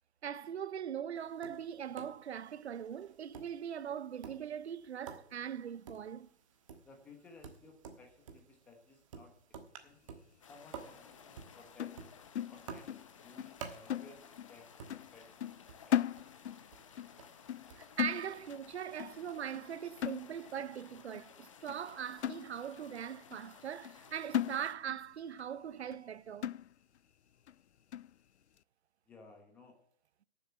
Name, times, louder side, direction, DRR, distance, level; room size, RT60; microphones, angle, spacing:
voice 1, 0.2-6.3 17.7-26.5, right 8 dB, 75° right, 0.6 m, -41 dB
Tap, 1.2-17.9, right 6 dB, 30° right, 1.4 m, -53 dB
voice 2, 6.8-9.3 9.7-10.0 10.5-11.9 12.5-12.9 13.2-15.5 15.9-16.1 29.1-29.8, left 3 dB, 5° left, 1.0 m, -58 dB
sound 1, 10.4-24.8, left 7 dB, 30° left, 0.9 m, -57 dB
sound 2, 11.8-13.1 13.4-13.6 13.9-14.6 14.9-15.1 15.4-16.7 17.0-17.2 17.5-17.7 18.0-18.7 19.0-19.2 19.5-19.7 20.0-20.7 21.1-21.2 21.7-21.8 22.2-22.9 23.3-23.4 23.8-24.0 24.3-25.1 25.4-25.5 25.9-26.0 26.4-27.0 27.5-27.6 27.9-28.1, left 10 dB, 85° left, 0.5 m, -37 dB
11.5 x 7.1 x 7.5 m
hypercardioid pair, 165°, 33 cm